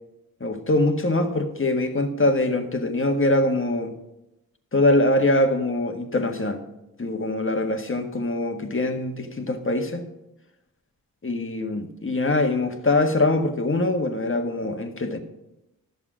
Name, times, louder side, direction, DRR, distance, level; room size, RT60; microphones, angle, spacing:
voice 1, 0.4-3.9 4.7-6.6 7.0-10.1 11.2-15.2, left 2 dB, 35° left, 5 dB, 1.6 m, -23 dB
11.0 x 7.0 x 6.2 m, 0.93 s
cardioid pair, 50°, 36 cm